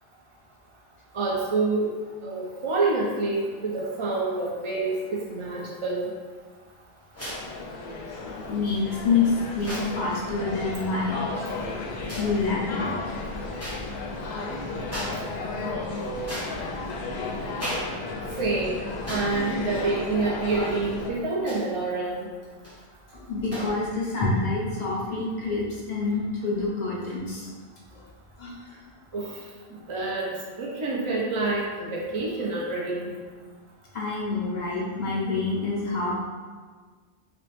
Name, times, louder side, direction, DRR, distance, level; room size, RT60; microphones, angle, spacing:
voice 1, 1.1-1.9 2.2-6.1 18.4-18.8 19.1-22.3 29.1-29.2 29.9-33.1, right 3 dB, 40° right, -4 dB, 0.5 m, -27 dB
sound 1, 7.1-7.5 8.7-8.8 9.5-10.0 11.1-11.4 12.0-12.4 13.6-13.9 14.2-14.4 14.9-15.3 15.6-16.9 17.5-18.0 18.3-18.4 19.0-19.4 19.8-19.9 21.4-21.8 22.4-22.8 23.5-23.8, equal, 15° left, 1.0 m, -36 dB
sound 2, 7.2-21.1, left 3 dB, 90° left, 0.9 m, -33 dB
voice 2, 8.5-11.2 12.2-12.9 23.3-27.5 27.9-28.0 28.4-28.8 33.9-36.2, left 3 dB, 45° left, -6 dB, 1.1 m, -27 dB
4.0 x 2.8 x 3.4 m, 1.5 s
omnidirectional pair, 1.0 m